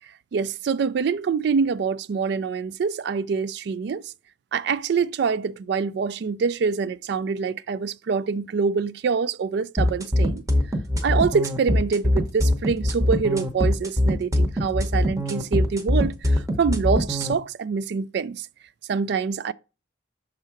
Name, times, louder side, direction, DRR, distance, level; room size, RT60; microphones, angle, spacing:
voice 1, 0.3-4.0 4.5-10.4 11.0-18.5 18.9-19.5, right 5 dB, 55° right, 0.3 m, -25 dB
sound 1, 9.8-17.3, left 1 dB, 15° right, 0.7 m, -22 dB
6.5 x 3.7 x 4.5 m
head